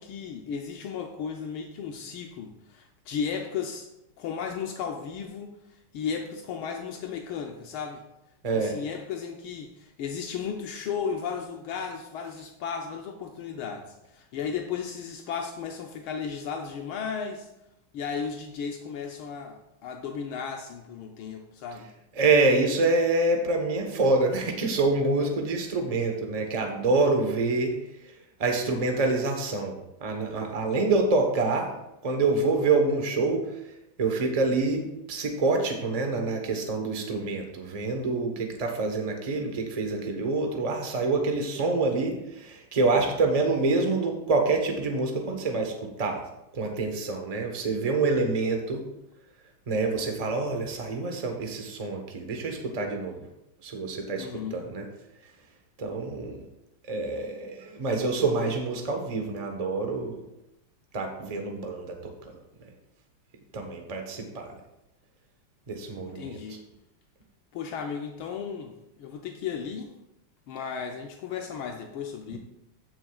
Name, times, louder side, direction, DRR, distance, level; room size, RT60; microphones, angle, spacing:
voice 1, 0.0-3.9 4.2-5.6 5.9-8.0 8.5-17.5 17.9-21.9 54.2-54.6 66.0-66.7 67.5-68.7 69.0-69.9 70.5-72.4, left 6 dB, 80° left, 3 dB, 1.5 m, -35 dB
voice 2, 8.4-8.8 22.2-27.8 28.4-29.8 30.0-31.7 32.0-33.5 34.0-45.7 46.0-46.2 46.5-48.9 49.7-53.1 53.6-54.3 54.5-54.8 55.8-56.4 56.9-60.2 60.9-62.0 63.5-64.5 65.7-66.3 72.3-72.4, right 3 dB, 30° right, 3 dB, 0.7 m, -26 dB
14.5 x 6.3 x 2.4 m, 0.87 s
omnidirectional pair, 2.4 m